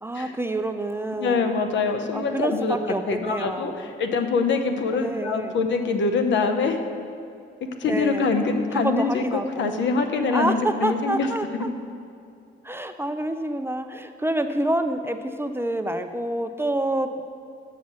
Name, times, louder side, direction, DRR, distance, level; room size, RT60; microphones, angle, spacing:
voice 1, 0.0-3.9 4.9-5.6 7.8-8.3 8.7-9.9 10.3-11.7 12.6-17.2, right 1 dB, 10° right, 8 dB, 0.4 m, -28 dB
voice 2, 1.2-6.8 7.6-11.3, left 4 dB, 70° left, 6 dB, 0.8 m, -24 dB
7.3 x 5.6 x 6.1 m, 2.5 s
cardioid pair, 90°, 20 cm